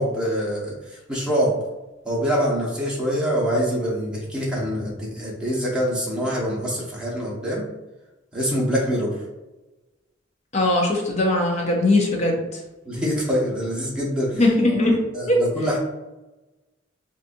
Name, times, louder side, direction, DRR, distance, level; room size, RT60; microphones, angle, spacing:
voice 1, 0.0-1.5 2.0-7.6 8.3-9.1 12.8-14.4 15.1-15.8, equal, 5° right, -5 dB, 1.0 m, -25 dB
voice 2, 10.5-12.4 14.4-15.0 15.3-15.4, left 2 dB, 35° left, 0 dB, 0.7 m, -19 dB
4.1 x 2.5 x 2.6 m, 1.1 s
head